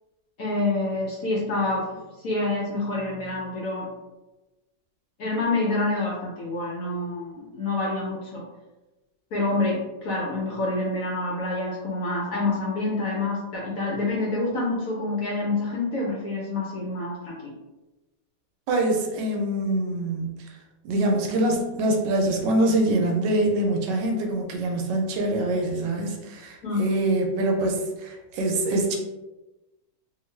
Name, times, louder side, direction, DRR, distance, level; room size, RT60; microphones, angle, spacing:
voice 1, 0.4-1.9 2.2-3.9 5.2-8.4 9.3-17.5 26.6-26.9, left 2 dB, 65° left, -3 dB, 0.9 m, -27 dB
voice 2, 18.7-20.5 20.8-29.0, right 1 dB, 75° right, 1 dB, 1.2 m, -24 dB
2.9 x 2.4 x 3.1 m, 1.1 s
omnidirectional pair, 2.0 m